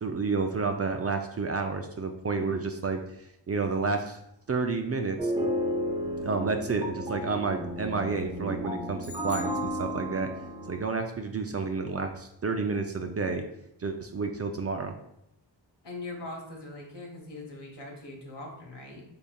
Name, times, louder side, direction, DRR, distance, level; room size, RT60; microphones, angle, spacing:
voice 1, 0.0-3.0 3.5-4.2 4.5-5.3 6.2-10.3 10.7-13.4 13.8-15.0, right 4 dB, 35° right, 5 dB, 0.4 m, -30 dB
sound 1, 5.2-10.8, equal, 10° right, 0.9 m, -33 dB
sound 2, 9.0-10.5, left 3 dB, 70° right, 0.8 m, -46 dB
voice 2, 15.8-19.0, left 2 dB, 65° left, 0 dB, 1.2 m, -41 dB
4.0 x 3.6 x 2.2 m, 0.80 s
cardioid pair, 55°, 45 cm